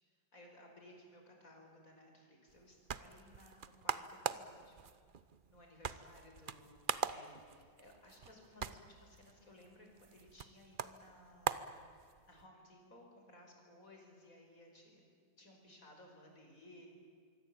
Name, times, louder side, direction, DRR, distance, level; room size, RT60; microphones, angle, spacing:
voice 1, 0.3-4.9 5.5-11.8 12.2-15.0 15.4-16.9, left 1 dB, 40° left, 2 dB, 5.9 m, -60 dB
sound 1, 2.5-12.4, right 6 dB, 70° right, 0.5 m, -43 dB
26.0 x 24.0 x 8.8 m, 2.1 s
omnidirectional pair, 2.1 m